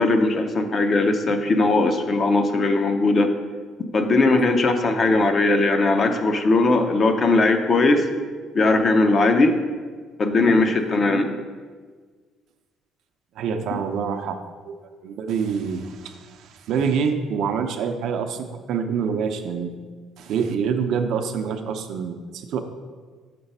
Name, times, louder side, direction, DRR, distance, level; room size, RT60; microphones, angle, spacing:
voice 1, 0.0-3.3 3.9-8.1 8.5-9.6 10.2-11.4, left 2 dB, 35° left, 6 dB, 0.6 m, -19 dB
voice 2, 13.4-14.4 14.6-14.8 15.0-19.7 20.2-22.6, right 6 dB, 70° right, 6 dB, 0.6 m, -26 dB
6.7 x 4.0 x 5.4 m, 1.5 s
cardioid pair, 130°, 0 cm